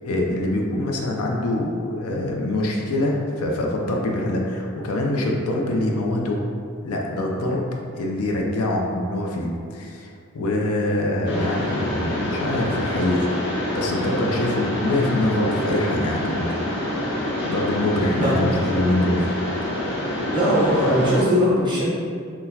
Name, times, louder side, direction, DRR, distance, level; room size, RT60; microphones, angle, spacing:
voice 1, 0.0-6.4 6.8-7.7 8.0-13.3 13.7-16.5 17.4-19.3 20.0-20.1, left 1 dB, 85° left, 0 dB, 0.5 m, -24 dB
Mechanisms, 11.3-21.2, left 1 dB, 50° left, 0.7 m, -27 dB
voice 2, 20.3-21.9, equal, 20° right, -7 dB, 0.7 m, -19 dB
3.8 x 2.1 x 2.7 m, 2.3 s
head